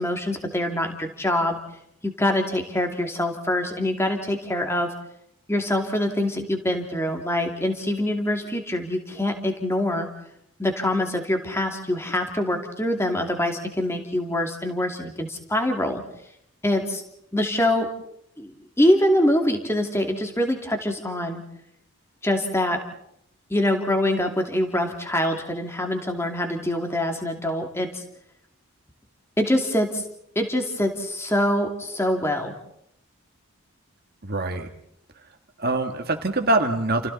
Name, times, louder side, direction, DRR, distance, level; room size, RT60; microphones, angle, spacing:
voice 1, 0.0-1.6 2.0-4.9 5.5-10.1 10.6-16.0 16.6-17.0 17.3-17.9 18.4-21.4 22.2-22.8 23.5-28.0 29.4-30.0 30.3-32.5, left 1 dB, 10° left, 4 dB, 2.6 m, -24 dB
voice 2, 34.2-34.7 35.6-37.1, right 2 dB, 45° right, 5 dB, 1.7 m, -24 dB
30.0 x 29.5 x 4.2 m, 0.73 s
head